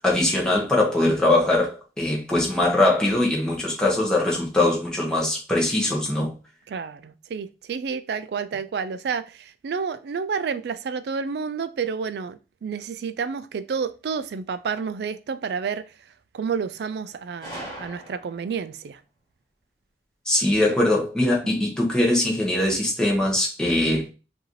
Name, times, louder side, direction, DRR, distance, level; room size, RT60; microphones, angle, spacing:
voice 1, 0.0-6.3 20.3-24.1, left 1 dB, 5° left, 1.1 m, -22 dB
voice 2, 6.7-15.9 16.3-19.0 21.4-21.7, right 6 dB, 60° right, 0.3 m, -30 dB
Gunshot gunfire, 17.4-18.6, right 1 dB, 25° left, 2.1 m, -39 dB
4.7 x 2.7 x 3.1 m
head